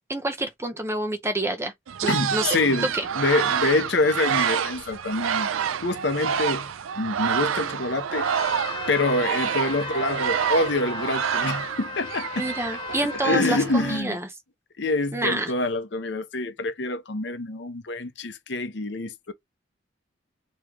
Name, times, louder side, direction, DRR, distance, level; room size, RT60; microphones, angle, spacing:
voice 1, 0.1-1.7 2.0-2.5 2.9-3.1 12.4-14.3 15.1-15.5, right 2 dB, 15° right, 0.6 m, -28 dB
sound 1, 1.9-14.0, right 8 dB, 85° right, 0.4 m, -28 dB
voice 2, 2.1-5.5 5.8-6.7 7.0-8.3 8.9-12.5 13.2-14.2 14.8-19.3, left 2 dB, 60° left, 0.8 m, -26 dB
Trumpet, 8.1-13.5, left 6 dB, 25° left, 0.5 m, -37 dB
3.7 x 3.0 x 3.0 m
head